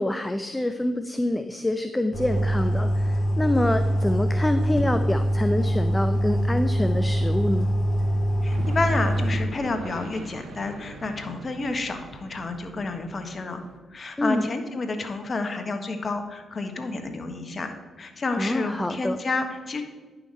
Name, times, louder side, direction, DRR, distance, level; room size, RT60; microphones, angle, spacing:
voice 1, 0.0-7.7 14.2-14.5 18.4-19.2, left 1 dB, 15° left, 8 dB, 0.5 m, -26 dB
sound 1, 2.1-9.4, equal, 65° left, 1.8 m, -24 dB
voice 2, 8.4-13.6 13.9-19.8, left 3 dB, 45° left, 6 dB, 1.3 m, -30 dB
sound 2, 8.5-13.8, right 4 dB, 75° right, 0.8 m, -42 dB
10.5 x 5.8 x 4.2 m, 1.3 s
supercardioid pair, 55°, 0 cm